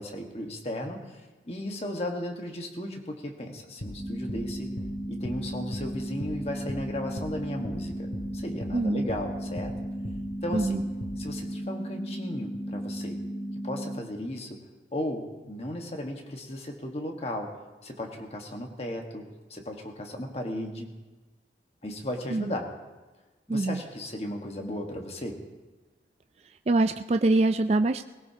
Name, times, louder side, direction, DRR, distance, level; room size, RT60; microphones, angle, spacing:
voice 1, 0.0-4.7 5.1-8.1 8.3-9.7 10.4-10.8 11.2-13.2 13.6-14.6 14.9-17.5 17.8-19.2 19.5-20.9 21.8-22.7 23.5-25.4, left 1 dB, 35° left, 2 dB, 1.5 m, -35 dB
sound 1, 3.8-4.0 4.3-4.4 4.8-4.9 5.2-5.4 5.7-5.9 6.2-6.4 6.7-6.8 7.2-7.3 7.6-7.8 8.1-8.3 8.6-8.8 9.1-9.2 9.6-9.7 10.0-10.2 10.5-10.7 11.0-11.2, equal, 80° left, 2.1 m, -38 dB
sound 2, 4.0-14.0, right 1 dB, 10° left, 3.4 m, -35 dB
voice 2, 8.7-9.1 10.5-10.9 22.3-22.6 23.5-23.8 26.7-28.0, right 2 dB, 35° right, 8 dB, 0.3 m, -24 dB
20.0 x 17.5 x 2.9 m, 1.2 s
head